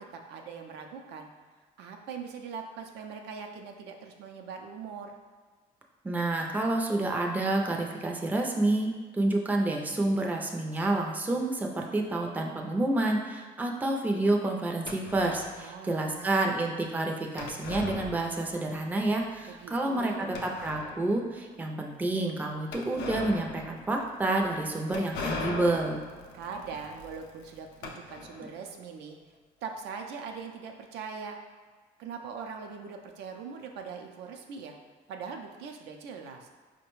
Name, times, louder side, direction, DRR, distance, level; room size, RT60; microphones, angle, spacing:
voice 1, 0.1-1.3 1.8-5.1 15.6-16.3 19.5-20.3 26.3-29.2 29.6-31.4 32.0-34.8 35.1-36.5, right 5 dB, 80° right, 3 dB, 0.5 m, -41 dB
voice 2, 6.0-26.0, right 2 dB, 10° right, 1 dB, 0.4 m, -29 dB
sound 1, 14.9-15.6 17.4-18.7 19.0-19.1 19.7-19.8 20.3-21.2 22.7-28.6, left 3 dB, 90° left, 0.5 m, -40 dB
4.7 x 2.1 x 3.0 m, 1.5 s
cardioid pair, 110°, 17 cm